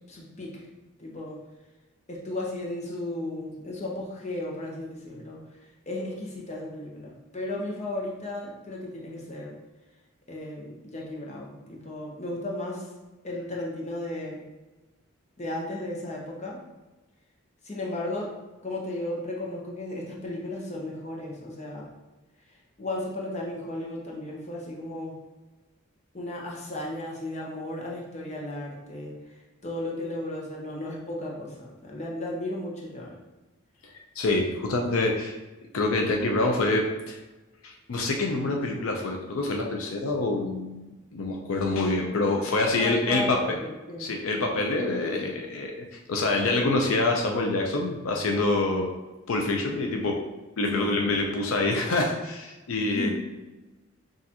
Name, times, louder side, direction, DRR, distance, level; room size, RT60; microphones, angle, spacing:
voice 1, 0.1-0.6 1.0-1.4 2.1-5.4 5.9-9.6 10.3-12.9 13.2-14.4 15.4-16.6 17.6-18.3 18.6-21.9 22.8-25.2 26.1-29.2 29.6-33.1 42.8-44.1 50.7-50.9 52.9-53.1, left 1 dB, 30° left, -3 dB, 0.8 m, -34 dB
voice 2, 33.8-35.4 35.7-37.2 37.6-43.6 44.0-48.9 49.3-50.3 50.6-53.1, left 2 dB, 75° left, 1 dB, 0.5 m, -26 dB
6.2 x 2.5 x 2.8 m, 1.1 s
head